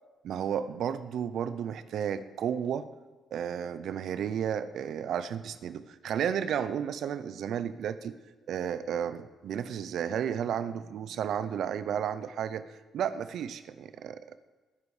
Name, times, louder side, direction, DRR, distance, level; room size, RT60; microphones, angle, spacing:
voice 1, 0.2-2.9 3.3-8.2 8.5-12.6 12.9-14.4, right 8 dB, 70° right, 13 dB, 0.7 m, -32 dB
20.5 x 8.6 x 5.0 m, 1.3 s
cardioid pair, 90°, 0 cm